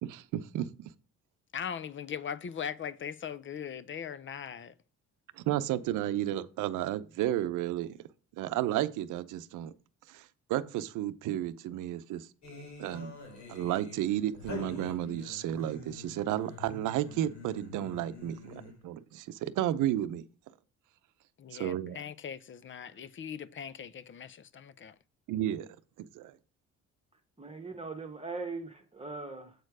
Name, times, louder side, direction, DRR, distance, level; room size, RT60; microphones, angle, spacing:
voice 1, 0.0-0.7 5.4-8.0 8.4-9.7 10.1-10.2 10.5-12.3 12.8-13.1 13.5-20.2 21.5-22.0 25.3-25.7 26.0-26.3, right 12 dB, 85° right, 0.7 m, -32 dB
voice 2, 1.5-4.7 21.4-24.9, left 8 dB, 40° left, 0.7 m, -40 dB
sound 1, 12.4-18.9, left 3 dB, 65° left, 3.6 m, -46 dB
voice 3, 27.4-29.5, right 3 dB, 20° right, 1.3 m, -40 dB
8.0 x 4.5 x 4.8 m
cardioid pair, 90°, 30 cm